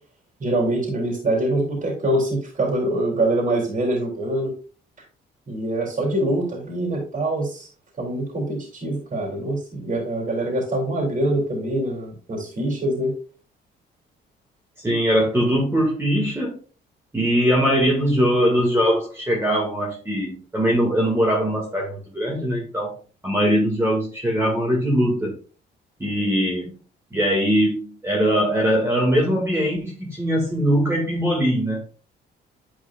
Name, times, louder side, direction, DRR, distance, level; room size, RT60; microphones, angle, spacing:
voice 1, 0.4-4.5 5.5-7.7 8.0-13.1, right 1 dB, 40° right, -1 dB, 3.5 m, -24 dB
voice 2, 14.8-16.6 17.1-22.9 23.2-25.4 26.0-26.7 27.1-32.0, equal, 10° right, -3 dB, 2.5 m, -21 dB
10.0 x 4.8 x 2.6 m, 0.37 s
cardioid pair, 90°, 20 cm